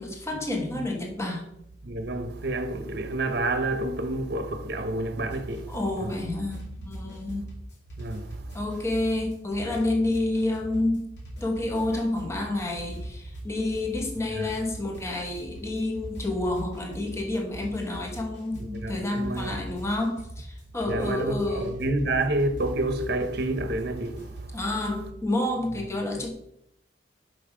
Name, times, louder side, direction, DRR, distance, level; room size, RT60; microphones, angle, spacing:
voice 1, 0.0-1.4 5.7-7.5 8.5-11.1 11.4-21.8 24.5-26.3, left 2 dB, 15° left, 1.1 m, -29 dB
voice 2, 1.8-5.7 6.0-6.1 8.0-8.3 14.4-14.5 18.5-19.6 20.8-24.5, right 2 dB, 55° right, 0.8 m, -29 dB
sound 1, 5.3-24.6, right 1 dB, 65° left, 2.6 m, -41 dB
5.5 x 5.4 x 5.0 m
head